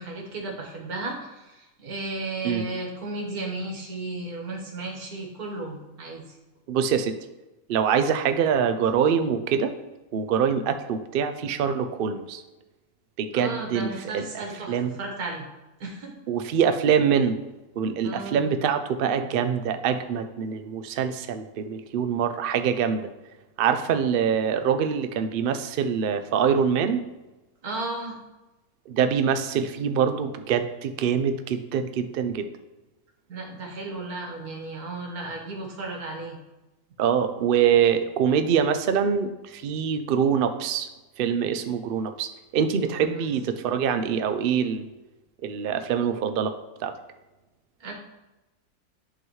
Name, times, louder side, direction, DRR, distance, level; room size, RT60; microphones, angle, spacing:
voice 1, 0.0-6.4 13.3-15.5 15.8-16.2 18.0-18.5 27.6-28.2 33.3-36.4 42.8-43.2 47.8-47.9, right 2 dB, 90° right, 0 dB, 1.9 m, -34 dB
voice 2, 6.7-7.1 7.7-9.7 10.1-12.4 13.2-13.9 14.1-14.9 16.3-17.4 17.8-23.0 23.6-27.0 28.9-32.5 37.0-40.9 41.2-44.9 45.4-46.5 46.8-46.9, right 7 dB, 65° right, 8 dB, 0.5 m, -24 dB
10.5 x 3.9 x 3.1 m, 1.1 s
omnidirectional pair, 1.6 m